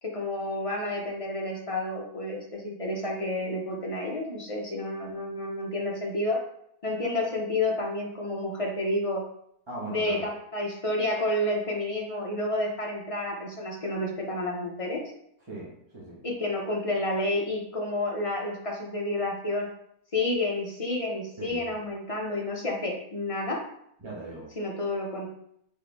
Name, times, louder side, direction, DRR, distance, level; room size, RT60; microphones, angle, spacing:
voice 1, 0.0-6.4 6.8-9.2 9.9-15.0 16.2-19.7 20.1-23.6 24.6-25.3, left 1 dB, 40° left, -1 dB, 0.5 m, -30 dB
voice 2, 9.7-10.2 15.5-16.3 21.4-21.8 24.0-24.5, right 2 dB, 25° right, -6 dB, 0.9 m, -39 dB
4.4 x 3.4 x 3.4 m, 0.72 s
omnidirectional pair, 1.6 m